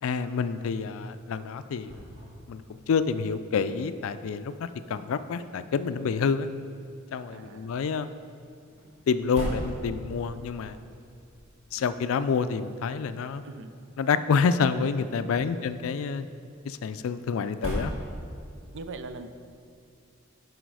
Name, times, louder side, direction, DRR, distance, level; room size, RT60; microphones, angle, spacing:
voice 1, 0.0-2.0 2.5-6.5 7.1-8.1 9.1-10.8 11.7-13.4 14.0-16.3 16.6-17.9, left 5 dB, 70° left, 12 dB, 0.4 m, -28 dB
sound 1, 0.6-18.7, equal, 30° right, 2.3 m, -43 dB
voice 2, 7.3-7.7 13.4-13.7 15.3-15.7 18.7-19.3, right 3 dB, 60° right, 9 dB, 0.5 m, -41 dB
10.0 x 5.0 x 4.7 m, 2.3 s
head